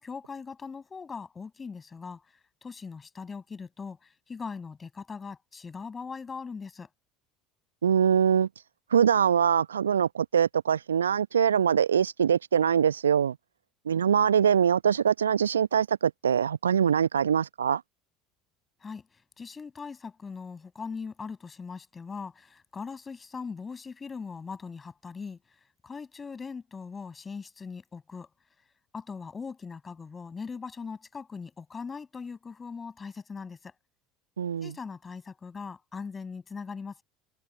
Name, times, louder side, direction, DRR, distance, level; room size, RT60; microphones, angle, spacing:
voice 1, 0.0-2.2 2.6-6.9 18.8-25.4 25.8-28.3 28.9-33.7 34.6-37.0, left 5 dB, 20° left, 7.7 m, -40 dB
voice 2, 7.8-8.5 8.9-13.4 13.9-17.8 34.4-34.7, right 8 dB, 75° right, 0.9 m, -23 dB
figure-of-eight pair, 70°, 0 cm